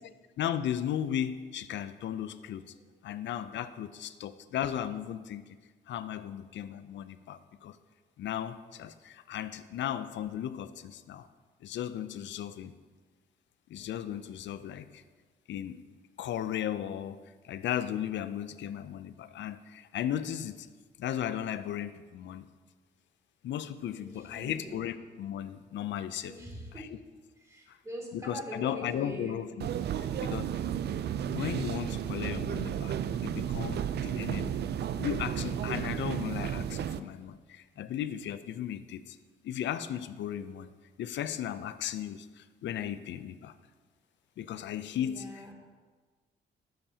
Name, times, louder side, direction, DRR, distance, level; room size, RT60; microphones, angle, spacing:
voice 1, 0.0-2.6 3.0-5.4 5.9-7.8 8.2-11.3 11.6-12.7 13.7-15.0 15.5-15.8 16.2-17.2 17.4-20.7 21.0-22.4 23.4-26.3 27.7-27.8 28.1-29.7 30.0-30.6 30.9-31.0 31.3-34.6 35.0-39.2 39.4-40.7 41.0-43.5 44.4-45.3, left 10 dB, 65° left, 13 dB, 0.5 m, -36 dB
voice 2, 14.4-14.8 23.9-24.8 26.2-26.9 27.4-29.4 34.3-34.7 44.4-44.7 45.0-45.5, right 1 dB, 15° right, -2 dB, 2.6 m, -44 dB
sound 1, 29.6-37.0, right 9 dB, 55° right, 0.4 m, -33 dB
11.5 x 7.7 x 2.8 m, 1.4 s
cardioid pair, 90°, 20 cm